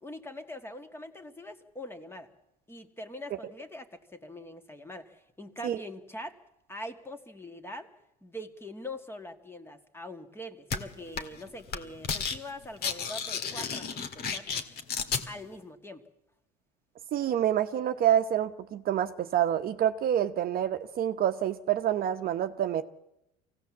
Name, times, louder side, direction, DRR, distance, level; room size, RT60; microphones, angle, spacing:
voice 1, 0.0-2.3 2.7-6.4 6.7-7.9 8.2-14.5 15.3-16.1, left 1 dB, 10° left, 8 dB, 1.9 m, -43 dB
sound 1, 10.7-10.8 11.2-11.4 11.7-12.4 12.6-15.2, left 6 dB, 50° left, 2.0 m, -32 dB
voice 2, 17.1-22.8, right 10 dB, 45° right, 8 dB, 1.0 m, -27 dB
23.5 x 17.0 x 7.3 m, 0.86 s
supercardioid pair, 95°, 20 cm